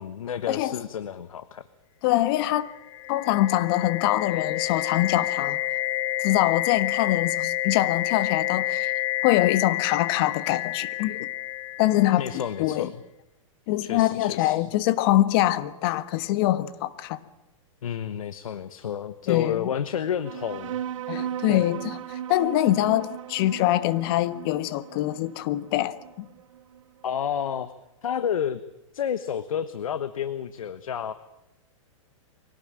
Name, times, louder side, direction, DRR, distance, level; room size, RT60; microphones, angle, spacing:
voice 1, 0.0-1.6 12.2-12.9 13.8-14.6 17.8-20.8 21.5-21.6 27.0-27.7 28.0-28.6 28.9-31.1, left 8 dB, 85° left, 1.3 m, -30 dB
voice 2, 2.0-2.7 3.1-5.6 6.2-11.3 11.8-12.9 13.7-17.2 19.3-19.7 21.1-26.3, left 15 dB, 45° left, 1.5 m, -24 dB
sound 1, 2.7-12.5, left 14 dB, 65° left, 1.0 m, -29 dB
sound 2, 20.2-27.2, right 10 dB, 70° right, 1.0 m, -37 dB
24.0 x 18.0 x 8.9 m
hypercardioid pair, 140°, 17 cm